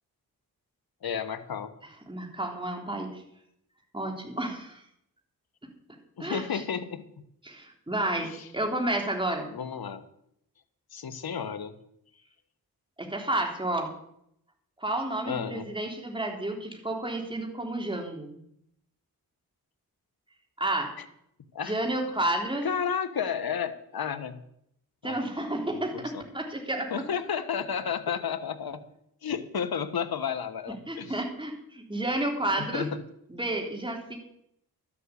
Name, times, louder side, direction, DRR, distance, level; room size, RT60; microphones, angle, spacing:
voice 1, 1.0-1.7 6.2-7.0 8.1-8.5 9.4-10.0 10.9-11.7 15.3-15.7 21.0-21.1 21.5-21.8 22.6-24.4 25.0-25.2 25.7-26.2 26.9-28.8 29.2-31.2 32.6-33.0, left 7 dB, 70° left, 10 dB, 1.4 m, -32 dB
voice 2, 2.1-3.2 3.9-4.8 6.2-6.6 7.4-9.5 13.0-13.9 14.8-18.4 20.6-20.9 21.6-22.7 25.0-26.9 30.9-32.9 33.3-34.2, right 1 dB, 15° right, 1 dB, 3.4 m, -31 dB
12.5 x 7.7 x 8.3 m, 0.73 s
cardioid pair, 70°, 38 cm